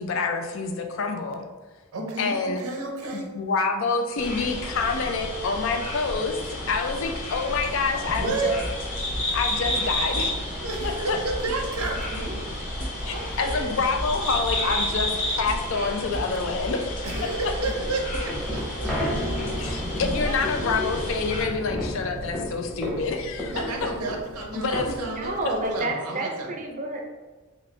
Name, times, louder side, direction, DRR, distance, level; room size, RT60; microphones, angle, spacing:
voice 1, 0.0-1.5 2.2-2.6 3.1-8.6 9.3-10.4 10.8-11.2 13.0-17.3 19.6-23.9 24.5-25.0, left 4 dB, 60° left, 5 dB, 0.4 m, -27 dB
voice 2, 1.9-3.3 8.1-8.6 10.6-12.4 13.1-13.7 17.0-19.3 19.6-19.9 20.1-20.9 23.5-26.5, right 2 dB, 90° right, 2 dB, 0.7 m, -31 dB
sound 1, 4.2-21.4, left 1 dB, 30° left, 1.1 m, -31 dB
sound 2, 7.5-19.7, equal, 90° left, 1.1 m, -37 dB
sound 3, 17.6-25.8, left 1 dB, ahead, 0.8 m, -32 dB
voice 3, 25.1-27.0, right 2 dB, 35° right, 2 dB, 0.5 m, -29 dB
4.1 x 2.5 x 3.2 m, 1.3 s
head